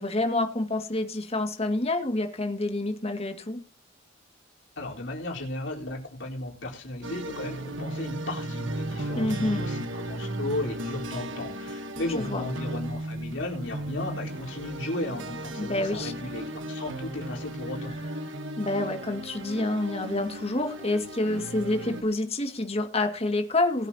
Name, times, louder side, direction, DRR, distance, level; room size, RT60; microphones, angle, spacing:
voice 1, 0.0-3.6 9.2-9.6 12.1-12.4 15.6-16.1 18.6-23.9, left 2 dB, 30° left, 5 dB, 2.2 m, -28 dB
voice 2, 4.8-18.0, left 2 dB, 75° left, -2 dB, 4.2 m, -35 dB
sound 1, 7.0-22.0, right 1 dB, 75° right, 1.4 m, -35 dB
21.0 x 9.0 x 2.9 m, 0.33 s
head